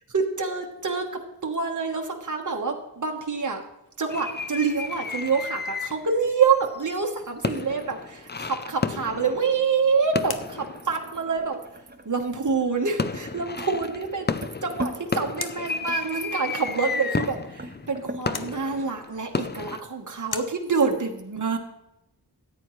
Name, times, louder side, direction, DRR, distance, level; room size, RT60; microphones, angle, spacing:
voice 1, 0.1-1.0 1.4-3.6 4.0-11.6 12.0-14.3 14.6-21.6, right 5 dB, 50° right, 2 dB, 1.3 m, -26 dB
sound 1, 4.1-6.2 6.6-11.5 12.2-12.6 13.0-19.8, left 4 dB, 25° left, 0.5 m, -32 dB
sound 2, 7.2-20.8, left 6 dB, 65° left, 0.8 m, -45 dB
sound 3, 9.0-18.3, right 2 dB, 25° right, 0.7 m, -41 dB
13.5 x 9.4 x 3.2 m, 0.87 s
wide cardioid pair, 50°, 40 cm